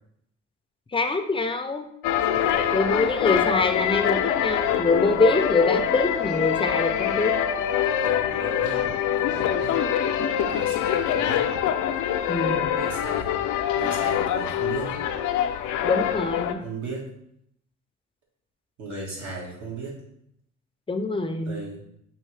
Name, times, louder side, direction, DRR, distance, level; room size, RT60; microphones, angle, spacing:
voice 1, 0.9-1.8 2.7-7.4 12.3-12.7 15.8-16.6 20.9-21.6, left 3 dB, 20° left, 7 dB, 0.4 m, -24 dB
sound 1, 2.0-16.5, left 9 dB, 85° left, 0.5 m, -24 dB
voice 2, 2.3-2.7 4.6-4.8 7.9-8.8 9.1-9.8 10.5-11.4 12.8-13.4 13.8-15.0 16.6-17.1 18.8-20.0 21.4-21.8, right 3 dB, 70° right, -4 dB, 1.8 m, -36 dB
5.4 x 3.0 x 3.2 m, 0.73 s
cardioid pair, 90°, 30 cm